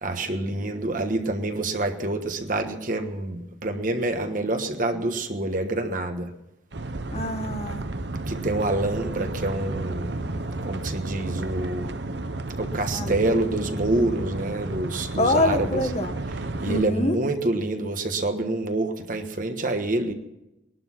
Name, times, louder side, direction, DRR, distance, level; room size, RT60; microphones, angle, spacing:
voice 1, 0.0-6.3 8.3-10.3 10.6-11.9 12.6-15.8 16.6-20.1, right 2 dB, 45° right, 6 dB, 1.4 m, -27 dB
sound 1, 6.7-16.8, right 2 dB, 65° right, 0.9 m, -32 dB
voice 2, 7.1-7.8 12.9-13.5 15.2-16.1 16.7-17.1, left 1 dB, 35° left, 6 dB, 1.3 m, -25 dB
20.0 x 12.0 x 5.9 m, 0.94 s
head